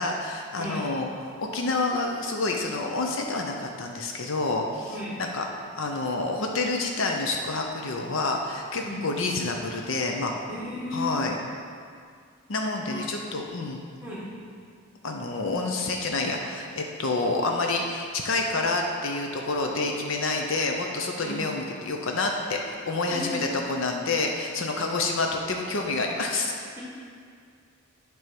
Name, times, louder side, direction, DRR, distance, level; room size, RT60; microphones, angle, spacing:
voice 1, 0.0-10.4 10.9-11.4 12.5-13.8 15.0-26.5, left 3 dB, 60° left, 2 dB, 0.6 m, -28 dB
voice 2, 4.9-5.2 8.8-9.0 10.5-11.1 12.9-13.0 14.0-14.2 21.1-21.4 23.1-23.6 26.8-26.9, left 1 dB, 10° right, -7 dB, 1.5 m, -34 dB
9.4 x 3.5 x 6.0 m, 2.2 s
head